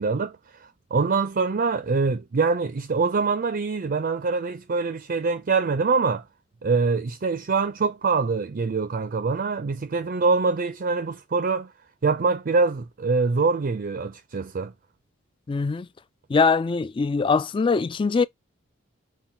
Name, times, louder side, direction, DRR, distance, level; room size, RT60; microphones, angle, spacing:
voice 1, 0.0-6.2 6.6-11.7 12.0-14.7, right 4 dB, 45° right, 0.5 m, -24 dB
voice 2, 15.5-15.9 16.3-18.2, left 4 dB, 25° left, 0.3 m, -22 dB
5.5 x 2.2 x 4.4 m
head